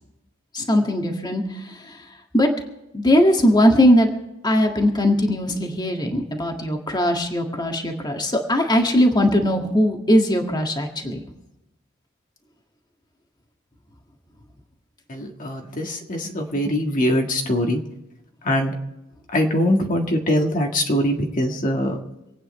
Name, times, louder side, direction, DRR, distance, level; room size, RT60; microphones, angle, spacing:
voice 1, 0.5-1.4 2.3-2.5 2.9-4.1 4.4-11.2, equal, 20° left, 2 dB, 1.8 m, -19 dB
voice 2, 15.1-17.8 18.4-18.7 19.3-22.0, left 1 dB, 40° left, 1 dB, 1.7 m, -22 dB
26.5 x 9.2 x 4.3 m, 0.94 s
head